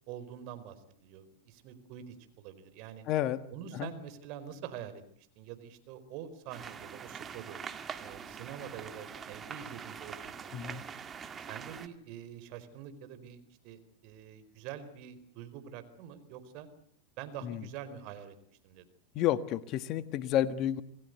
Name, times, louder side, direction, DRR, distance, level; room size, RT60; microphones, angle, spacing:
voice 1, 0.1-3.0 3.5-5.0 5.3-7.6 8.0-10.9 11.4-16.7 17.2-18.3 18.6-18.8, right 9 dB, 50° right, 11 dB, 4.6 m, -46 dB
voice 2, 3.1-3.4 3.7-3.9 10.5-10.8 17.4-17.6 19.1-20.8, left 12 dB, 45° left, 13 dB, 1.6 m, -30 dB
sound 1, 6.5-11.9, right 7 dB, 25° right, 2.0 m, -44 dB
27.5 x 20.0 x 8.1 m, 0.66 s
hypercardioid pair, 100°, 0 cm